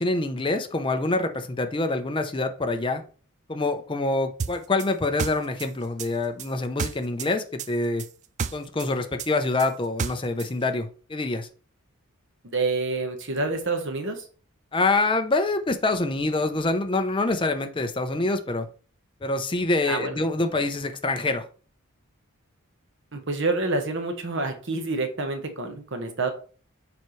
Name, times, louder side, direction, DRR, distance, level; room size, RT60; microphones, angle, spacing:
voice 1, 0.0-3.0 3.5-8.0 8.5-11.5 14.7-18.7 19.2-21.4, left 2 dB, 25° left, 7 dB, 0.6 m, -26 dB
sound 1, 4.4-7.3 7.6-10.5, right 6 dB, 35° right, 0.3 m, -31 dB
voice 2, 12.4-14.3 19.9-20.2 23.1-26.3, right 3 dB, 60° right, 6 dB, 1.2 m, -28 dB
7.0 x 4.7 x 3.2 m, 0.41 s
head